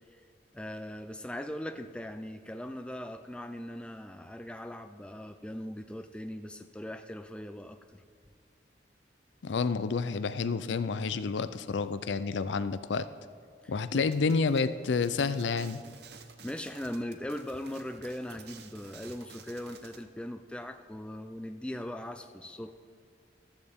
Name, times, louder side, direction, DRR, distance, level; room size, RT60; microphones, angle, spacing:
voice 1, 0.5-8.0 13.6-14.1 16.4-22.7, left 1 dB, 5° left, 7 dB, 0.3 m, -40 dB
voice 2, 9.4-13.1 13.7-15.8, left 4 dB, 70° left, 13 dB, 0.5 m, -29 dB
sound 1, 14.1-20.0, right 6 dB, 60° right, 0.8 m, -52 dB
14.5 x 13.0 x 3.6 m, 2.2 s
head